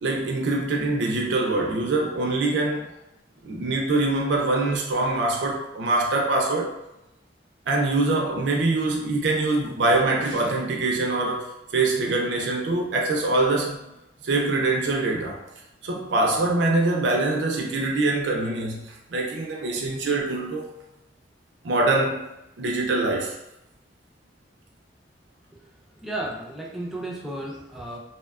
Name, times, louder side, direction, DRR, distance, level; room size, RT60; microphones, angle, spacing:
voice 1, 0.0-2.9 3.4-6.7 7.7-13.9 14.2-15.4 15.8-20.7 21.6-22.3 22.6-23.4, right 2 dB, 85° right, 0 dB, 0.4 m, -24 dB
voice 2, 26.0-28.0, right 1 dB, ahead, -4 dB, 0.4 m, -33 dB
2.7 x 2.1 x 2.3 m, 0.89 s
head